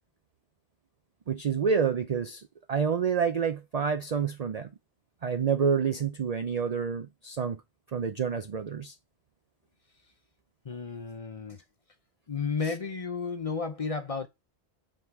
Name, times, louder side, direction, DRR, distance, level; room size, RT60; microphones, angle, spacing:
voice 1, 1.3-4.7 5.2-7.6 7.9-8.9, right 6 dB, 45° right, 0.5 m, -28 dB
voice 2, 10.6-11.6 12.3-14.3, left 5 dB, 35° left, 0.7 m, -32 dB
8.9 x 3.8 x 4.6 m
omnidirectional pair, 1.2 m